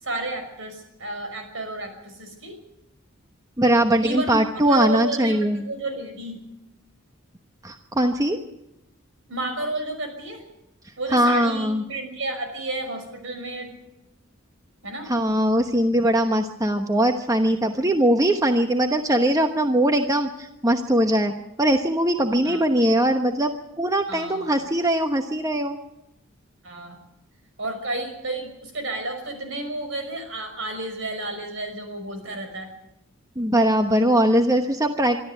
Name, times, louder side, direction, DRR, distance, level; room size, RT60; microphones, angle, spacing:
voice 1, 0.0-2.6 4.0-4.4 4.7-6.4 9.3-10.4 11.0-13.8 14.8-15.1 22.4-22.6 24.1-24.6 26.6-27.0 27.6-32.7, right 2 dB, 70° right, 6 dB, 5.6 m, -31 dB
voice 2, 3.6-5.6 7.6-8.4 11.1-11.8 15.1-21.3 21.6-25.8 33.4-35.2, right 1 dB, 15° right, 5 dB, 1.0 m, -21 dB
24.5 x 13.0 x 8.2 m, 0.87 s
head